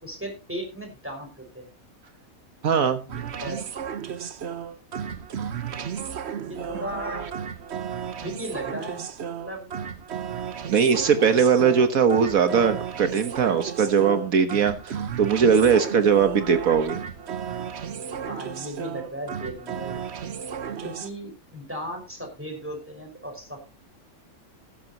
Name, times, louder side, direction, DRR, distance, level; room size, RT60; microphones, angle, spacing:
voice 1, 0.0-1.7 3.1-3.6 6.5-7.3 8.2-9.0 9.4-9.7 18.3-20.0 20.8-23.6, equal, 10° right, 2 dB, 5.0 m, -36 dB
voice 2, 2.6-3.0 10.7-17.0, right 6 dB, 70° right, 9 dB, 1.6 m, -20 dB
sound 1, 3.1-21.1, right 7 dB, 50° right, 1.1 m, -34 dB
16.0 x 13.0 x 2.8 m, 0.29 s
omnidirectional pair, 1.5 m